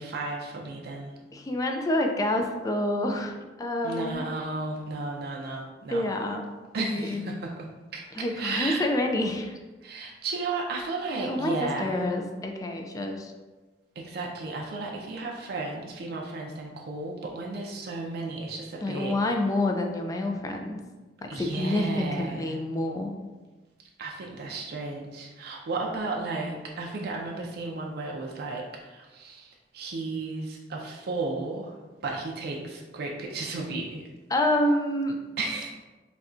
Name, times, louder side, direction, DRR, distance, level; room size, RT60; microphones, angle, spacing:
voice 1, 0.0-1.1 3.8-6.1 6.7-7.7 7.9-8.9 9.8-12.1 14.0-19.1 21.3-22.5 24.0-31.8 32.0-34.1 35.4-35.7, right 3 dB, 60° right, -1 dB, 0.4 m, -34 dB
voice 2, 1.3-3.3 3.6-4.2 5.9-6.5 6.8-7.2 8.1-9.5 11.2-13.3 18.8-20.8 21.2-23.2 34.3-35.2, left 1 dB, 20° left, 2 dB, 0.3 m, -28 dB
4.1 x 2.2 x 2.5 m, 1.2 s
head